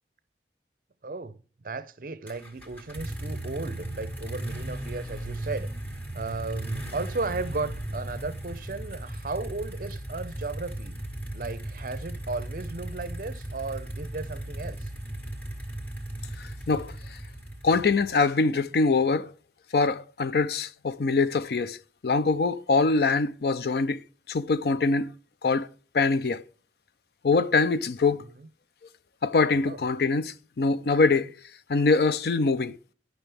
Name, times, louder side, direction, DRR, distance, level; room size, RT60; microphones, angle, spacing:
voice 1, 1.0-1.4 1.6-11.0 11.3-14.9 28.3-28.5 29.7-29.8, right 3 dB, 50° right, 0.6 m, -35 dB
sound 1, 2.3-18.2, right 1 dB, 10° left, 1.7 m, -37 dB
voice 2, 16.4-17.2 17.6-19.3 19.7-21.8 22.0-24.0 24.3-25.1 25.4-25.7 25.9-26.4 27.2-28.2 29.2-31.3 31.7-32.8, left 4 dB, 60° left, 0.5 m, -24 dB
11.0 x 6.0 x 3.4 m
head